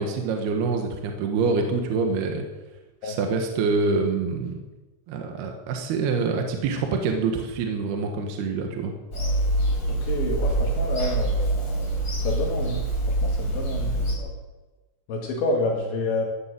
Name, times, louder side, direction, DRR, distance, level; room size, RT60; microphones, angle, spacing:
voice 1, 0.0-2.4 3.0-4.6 5.1-8.9, right 4 dB, 65° right, 3 dB, 2.8 m, -26 dB
Bird vocalization bird call bird song / Telephone, 9.1-14.1, right 2 dB, 20° left, 3.4 m, -25 dB
voice 2, 9.9-11.5 12.2-14.3 15.1-16.2, left 3 dB, 65° left, 0 dB, 4.1 m, -29 dB
15.5 x 12.0 x 7.5 m, 1.2 s
omnidirectional pair, 6.0 m